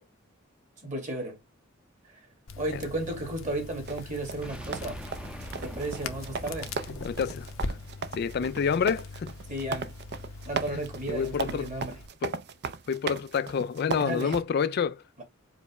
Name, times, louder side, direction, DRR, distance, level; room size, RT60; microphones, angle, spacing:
voice 1, 0.8-1.4 2.6-5.0 5.6-6.7 9.5-9.9 10.5-12.0 14.0-14.4, right 1 dB, 40° right, 2.0 m, -34 dB
Crackle, 2.5-12.1, left 3 dB, 75° left, 0.7 m, -41 dB
sound 1, 3.9-14.4, right 4 dB, 55° right, 0.5 m, -36 dB
sound 2, 4.4-8.4, right 1 dB, 5° right, 0.6 m, -44 dB
voice 2, 7.0-7.5 8.1-9.3 11.1-11.7 12.2-12.3 12.9-15.0, left 6 dB, 50° left, 0.3 m, -28 dB
5.1 x 2.1 x 4.8 m
head